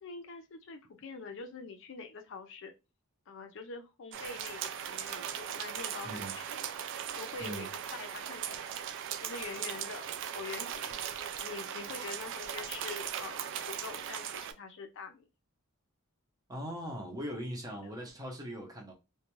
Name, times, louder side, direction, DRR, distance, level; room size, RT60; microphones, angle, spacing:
voice 1, 0.0-2.7 3.3-8.8 9.2-11.0 11.3-15.3 17.8-18.0, left 4 dB, 60° left, 0.5 m, -45 dB
sound 1, 4.1-14.5, right 9 dB, 60° right, 0.3 m, -39 dB
voice 2, 6.0-6.3 7.4-7.7 16.5-18.9, equal, 15° right, 0.6 m, -40 dB
2.4 x 2.2 x 2.9 m
head